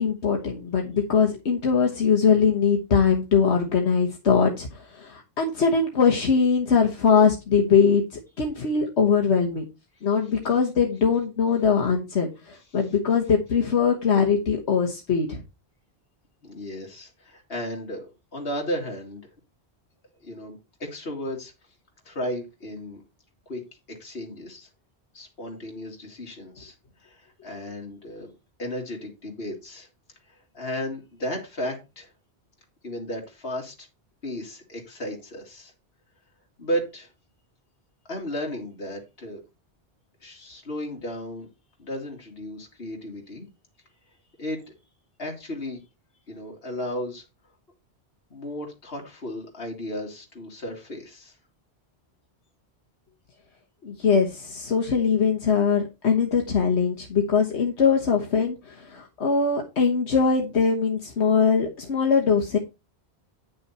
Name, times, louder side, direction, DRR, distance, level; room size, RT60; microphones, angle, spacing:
voice 1, 0.0-9.6 10.0-15.4 53.8-62.6, left 6 dB, 80° left, 1 dB, 1.5 m, -22 dB
voice 2, 16.4-19.3 20.2-21.5 22.0-23.0 23.5-23.6 23.9-24.7 25.1-26.7 27.0-28.3 28.6-29.9 30.3-32.1 32.8-33.9 34.2-35.7 36.6-37.1 38.1-39.4 40.2-41.5 41.8-43.5 44.4-44.6 45.2-45.8 46.3-47.2 48.3-51.4, equal, 65° left, 0 dB, 2.7 m, -34 dB
9.5 x 6.4 x 4.2 m, 0.26 s
omnidirectional pair, 1.1 m